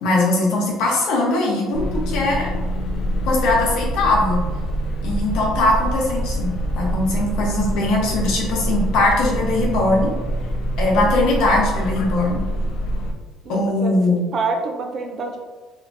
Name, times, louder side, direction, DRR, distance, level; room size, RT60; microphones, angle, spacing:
voice 1, 0.0-2.5 3.2-4.4 5.0-10.1 10.8-12.4 13.5-14.3, left 2 dB, 65° left, -2 dB, 0.9 m, -20 dB
sound 1, 1.7-13.1, right 1 dB, 45° left, 0.4 m, -25 dB
voice 2, 13.4-15.4, right 3 dB, 30° right, 3 dB, 0.4 m, -27 dB
3.5 x 2.8 x 2.5 m, 1.3 s
cardioid pair, 170°, 0 cm